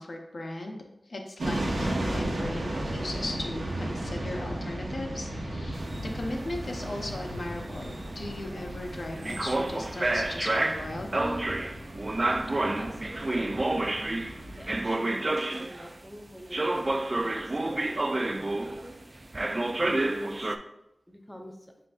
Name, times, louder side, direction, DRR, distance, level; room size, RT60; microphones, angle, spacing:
voice 1, 0.0-11.4, left 1 dB, 65° left, 2 dB, 0.6 m, -37 dB
sound 1, 1.4-14.6, right 1 dB, 85° right, 1.0 m, -35 dB
sound 2, 5.8-16.0 16.5-19.0 19.3-20.6, right 2 dB, 40° right, 0.3 m, -30 dB
voice 2, 12.2-14.1 14.4-19.0 19.8-20.6 21.1-21.7, equal, 5° left, 3 dB, 0.6 m, -45 dB
7.5 x 2.5 x 2.4 m, 0.85 s
cardioid pair, 40°, 0 cm